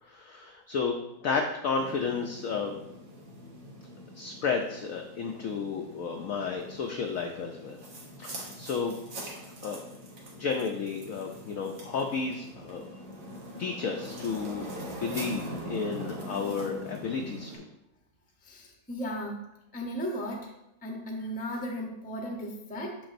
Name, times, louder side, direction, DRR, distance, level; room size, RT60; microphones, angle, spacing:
voice 1, 0.0-1.0 1.2-2.8 4.1-7.8 8.2-8.9 9.6-9.8 10.4-12.9 13.6-17.6, left 5 dB, 75° left, 3 dB, 0.7 m, -32 dB
sound 1, 1.8-17.6, right 1 dB, 75° right, 1.9 m, -43 dB
voice 2, 18.4-19.4 19.7-20.5 20.8-23.0, equal, 10° left, 0 dB, 0.4 m, -35 dB
6.9 x 5.9 x 2.5 m, 0.89 s
omnidirectional pair, 1.9 m